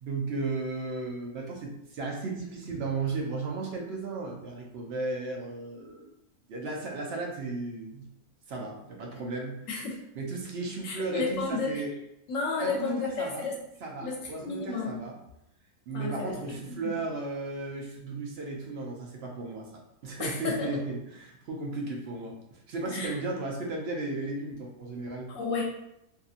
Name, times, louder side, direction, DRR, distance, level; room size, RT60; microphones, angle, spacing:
voice 1, 0.0-6.1 6.5-8.0 8.5-9.6 10.2-11.9 12.6-13.4 13.8-15.1 15.9-19.7 20.0-25.3, right 3 dB, 60° right, 0 dB, 0.7 m, -35 dB
voice 2, 9.7-10.0 10.8-11.8 12.3-13.5 14.0-14.2 14.4-15.0 15.9-17.0 20.2-20.8 22.9-23.2 25.3-25.6, left 4 dB, 75° left, -1 dB, 0.9 m, -32 dB
2.7 x 2.7 x 2.4 m, 0.82 s
omnidirectional pair, 1.4 m